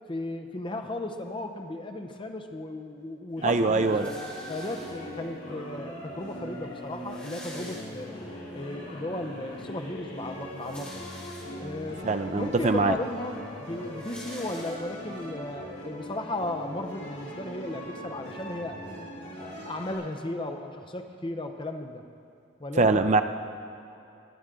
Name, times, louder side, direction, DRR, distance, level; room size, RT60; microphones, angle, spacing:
voice 1, 0.1-4.2 4.5-8.2 8.5-11.1 11.6-18.8 19.4-22.1 22.6-23.1, left 2 dB, 25° left, 5 dB, 0.7 m, -35 dB
sound 1, 3.4-20.0, equal, 65° left, 3.3 m, -40 dB
voice 2, 3.4-4.1 12.0-12.9 22.8-23.2, right 3 dB, 35° right, 9 dB, 0.4 m, -23 dB
sound 2, 3.8-5.3 6.1-6.2 6.4-6.5 6.8-8.4 8.8-8.9 10.3-11.8 12.5-12.6 12.8-15.2, left 1 dB, 10° left, 3.3 m, -47 dB
20.5 x 8.0 x 3.7 m, 2.7 s
head